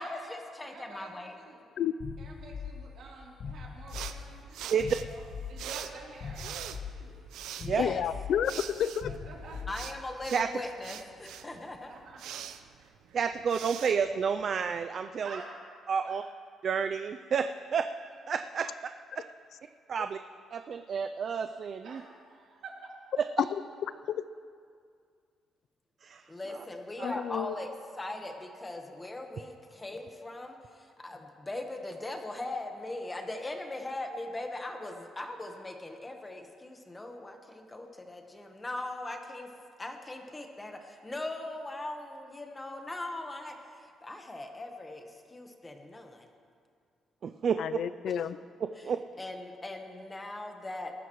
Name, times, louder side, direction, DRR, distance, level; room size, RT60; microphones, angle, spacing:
voice 1, 0.0-1.3 7.6-8.0 9.7-11.9 26.3-27.7 27.9-39.5 39.8-46.3 49.2-50.9, left 2 dB, 15° left, 4 dB, 1.1 m, -40 dB
voice 2, 0.6-1.6 2.2-5.2 5.5-6.5 6.9-7.1 9.1-9.6 11.9-12.4 15.2-15.5 16.0-16.2 21.8-22.9 26.4-26.5 48.8-48.9, right 4 dB, 65° right, -3 dB, 3.3 m, -49 dB
sound 1, 2.0-10.3, left 6 dB, 45° left, 1.0 m, -42 dB
sound 2, 3.9-14.8, right 10 dB, 90° right, 0.6 m, -44 dB
voice 3, 7.8-9.1 24.1-24.2 27.0-27.6 47.6-48.4, left 9 dB, 60° left, 15 dB, 0.4 m, -30 dB
voice 4, 13.1-15.4 15.9-16.2 16.6-19.2 19.9-20.2 20.5-22.0 26.0-26.6 27.0-27.2 47.2-47.6 48.6-49.0, right 6 dB, 45° right, 8 dB, 0.4 m, -31 dB
19.0 x 14.0 x 3.1 m, 2.2 s
cardioid pair, 145°, 0 cm